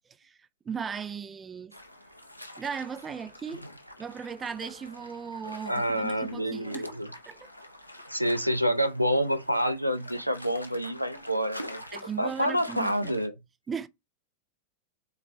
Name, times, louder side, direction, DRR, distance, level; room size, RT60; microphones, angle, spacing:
voice 1, 0.7-1.7 2.6-3.6 4.0-6.9 7.3-7.5 11.9-13.1 13.7-13.9, right 6 dB, 20° right, 0.4 m, -37 dB
sound 1, 1.7-13.3, left 1 dB, 90° left, 0.6 m, -45 dB
voice 2, 5.7-7.1 8.1-11.8 12.2-13.3, equal, 90° right, 0.4 m, -28 dB
4.0 x 3.0 x 4.2 m
figure-of-eight pair, 90°, 0 cm